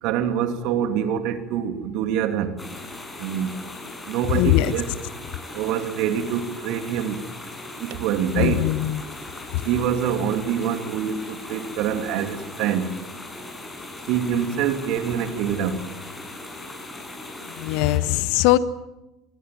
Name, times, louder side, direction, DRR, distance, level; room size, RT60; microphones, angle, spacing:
voice 1, 0.0-2.6 3.2-3.5 4.1-4.9 5.5-7.2 7.8-8.7 9.6-12.9 14.1-15.8, right 9 dB, 60° right, 7 dB, 2.8 m, -25 dB
sound 1, 2.6-18.0, left 2 dB, 20° left, 7.8 m, -39 dB
voice 2, 4.3-4.7 8.3-9.0 9.5-9.6 17.4-18.6, left 16 dB, 65° left, 15 dB, 1.2 m, -21 dB
26.5 x 22.5 x 7.7 m, 1.0 s
hypercardioid pair, 70°, 0 cm